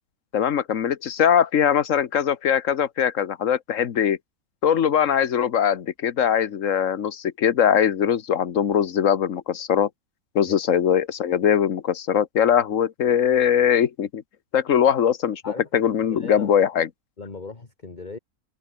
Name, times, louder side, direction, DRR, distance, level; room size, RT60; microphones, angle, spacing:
voice 1, 0.3-4.2 4.6-9.9 10.3-14.2 14.5-15.4 15.7-16.9, left 8 dB, 60° left, 1.4 m, -21 dB
voice 2, 16.1-16.5 17.2-18.2, left 4 dB, 30° left, 2.0 m, -37 dB
omnidirectional pair, 1.6 m